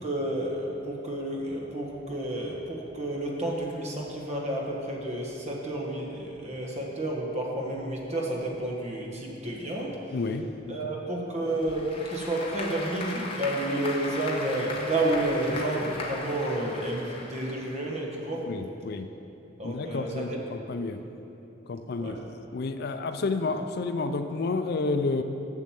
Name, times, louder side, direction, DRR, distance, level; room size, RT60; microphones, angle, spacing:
voice 1, 0.0-10.0 10.7-18.4 19.6-20.4 22.0-22.2, right 1 dB, 35° right, -1 dB, 1.4 m, -30 dB
voice 2, 10.1-10.8 18.5-19.1 19.6-21.0 21.7-22.2 22.5-25.2, left 3 dB, 55° left, 8 dB, 0.4 m, -30 dB
Applause / Crowd, 11.5-18.0, left 2 dB, 30° left, 1.1 m, -37 dB
7.2 x 6.5 x 7.5 m, 2.9 s
head